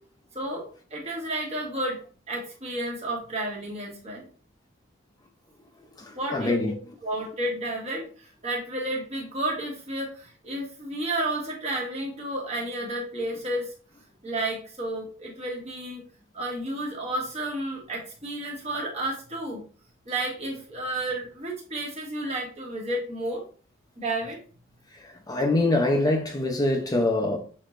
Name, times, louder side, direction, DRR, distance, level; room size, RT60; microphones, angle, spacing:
voice 1, 0.3-2.0 2.3-4.2 6.1-6.6 7.0-13.7 14.2-16.0 16.3-19.6 20.0-23.4 24.0-24.4, right 1 dB, 35° right, 1.4 m, -31 dB
voice 2, 6.0-6.7 24.9-27.4, left 2 dB, 20° left, 0.6 m, -24 dB
6.2 x 3.1 x 2.5 m
head